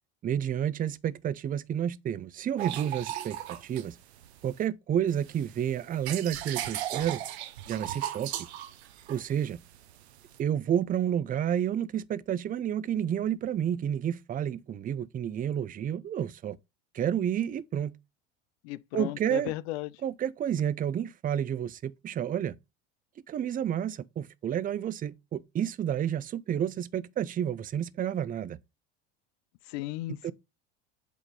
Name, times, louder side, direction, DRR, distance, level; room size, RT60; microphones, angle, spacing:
voice 1, 0.2-4.0 4.4-7.2 7.7-8.3 9.1-9.6 10.4-16.6 16.9-18.0 18.9-19.5 20.0-22.6 23.3-28.6 30.2-30.3, right 9 dB, 25° right, 0.5 m, -30 dB
sound 1, 2.6-4.7 5.1-10.4, right 12 dB, 85° right, 0.9 m, -37 dB
voice 2, 18.6-19.9 29.7-30.3, left 17 dB, 70° left, 0.6 m, -35 dB
8.2 x 3.7 x 4.2 m
hypercardioid pair, 90°, 32 cm